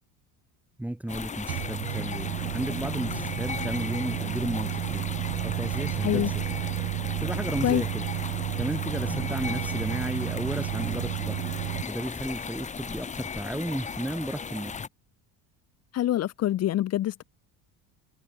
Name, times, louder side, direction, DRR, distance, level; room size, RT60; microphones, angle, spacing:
voice 1, 0.8-5.0 5.4-6.2 7.2-8.1 8.6-11.4 11.9-14.8, right 1 dB, 5° right, 2.8 m, -33 dB
sound 1, 1.1-14.9, left 6 dB, 20° left, 1.9 m, -36 dB
Microwave oven, 1.5-11.8, right 20 dB, 65° right, 2.2 m, -32 dB
voice 2, 15.9-17.2, left 13 dB, 45° left, 2.2 m, -25 dB
cardioid pair, 155°, 36 cm